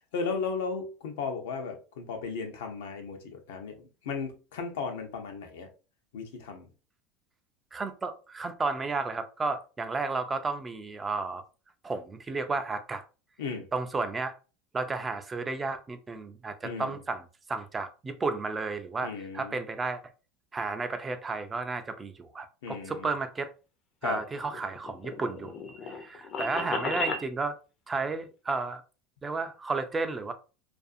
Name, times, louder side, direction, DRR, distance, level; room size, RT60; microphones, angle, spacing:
voice 1, 0.1-5.7 6.1-6.7 13.4-13.7 16.6-17.0 19.0-19.6 22.6-23.1 24.0-24.2, left 5 dB, 85° left, 0.6 m, -35 dB
voice 2, 7.7-11.4 11.8-13.0 13.7-14.3 14.7-20.0 20.5-23.5 24.0-25.5 25.8-27.6 27.9-28.8 29.2-30.3, right 3 dB, 20° right, 0.3 m, -32 dB
sound 1, 24.4-27.3, left 3 dB, 45° left, 0.5 m, -34 dB
2.5 x 2.3 x 2.5 m
supercardioid pair, 115°, 0 cm